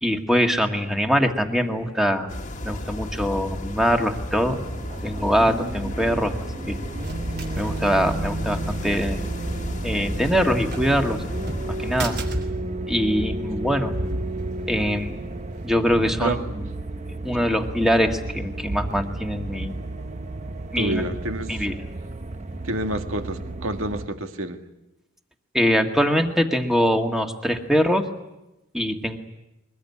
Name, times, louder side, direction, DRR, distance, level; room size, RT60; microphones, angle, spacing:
voice 1, 0.0-2.3 2.6-4.6 5.0-6.3 6.7-6.8 7.6-9.2 9.8-11.2 11.8-12.2 12.9-13.9 14.7-15.4 15.6-16.3 17.2-19.7 20.7-21.0 21.5-21.8 25.5-28.1 28.7-29.2, equal, ahead, 4 dB, 1.7 m, -23 dB
sound 1, 2.3-12.2, left 1 dB, 35° left, 1.6 m, -33 dB
sound 2, 4.3-24.1, right 2 dB, 35° right, 0.9 m, -32 dB
sound 3, 6.6-15.7, right 1 dB, 50° right, 3.3 m, -39 dB
voice 2, 20.8-21.7 22.6-24.6, right 1 dB, 75° right, 6 dB, 2.0 m, -28 dB
23.0 x 20.0 x 9.6 m, 0.96 s
head